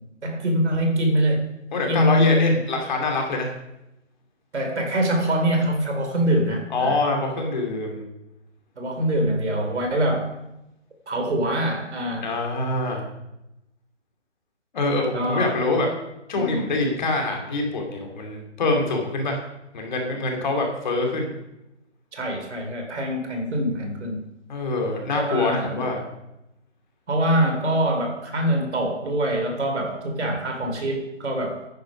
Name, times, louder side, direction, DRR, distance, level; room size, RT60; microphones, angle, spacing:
voice 1, 0.2-1.4 1.9-2.7 4.5-7.0 8.8-10.3 11.1-12.3 15.1-15.6 16.4-16.7 22.1-24.3 25.1-25.9 27.1-31.6, right 1 dB, 65° right, 3 dB, 3.6 m, -24 dB
voice 2, 1.7-3.5 6.7-8.0 12.2-13.0 14.7-15.9 16.3-19.4 19.7-21.3 24.5-26.1, left 2 dB, 35° left, 1 dB, 2.7 m, -25 dB
10.0 x 9.5 x 5.3 m, 0.89 s
hypercardioid pair, 160°, 37 cm